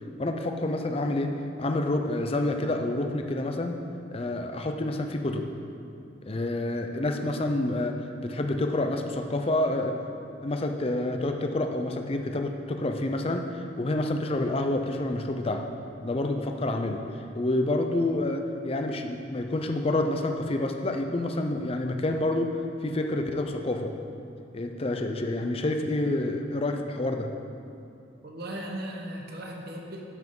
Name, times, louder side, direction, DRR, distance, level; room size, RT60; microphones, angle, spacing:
voice 1, 0.2-3.8 4.1-5.5 6.3-10.0 10.4-15.7 16.0-17.1 17.3-22.6 22.8-23.9 24.5-27.3, left 2 dB, 30° left, 5 dB, 0.5 m, -28 dB
voice 2, 28.2-30.0, right 1 dB, 55° right, 0 dB, 1.0 m, -37 dB
12.0 x 5.9 x 3.8 m, 2.6 s
head